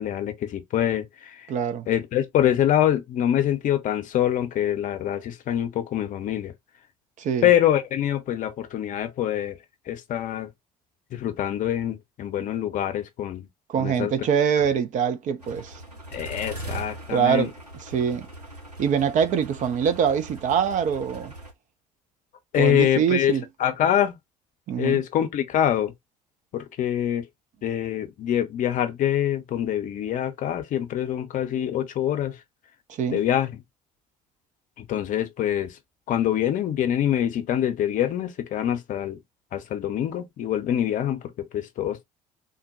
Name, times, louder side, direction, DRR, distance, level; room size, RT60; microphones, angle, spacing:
voice 1, 0.0-1.4 1.9-6.5 7.4-9.6 9.9-10.5 11.1-13.5 13.8-14.1 16.1-17.5 22.5-23.3 23.6-24.2 24.8-25.9 26.5-27.2 27.6-32.3 33.1-33.5 34.8-35.7 36.1-39.2 39.5-42.0, left 11 dB, 40° left, 0.7 m, -25 dB
voice 2, 1.5-1.9 7.2-7.5 13.7-15.8 17.1-17.5 17.8-18.3 18.8-21.3 22.6-23.4 24.7-25.0 32.9-33.2, right 7 dB, 40° right, 0.5 m, -24 dB
sound 1, 15.4-21.5, right 2 dB, 90° right, 0.7 m, -40 dB
3.7 x 2.1 x 2.6 m
figure-of-eight pair, 55°, 20 cm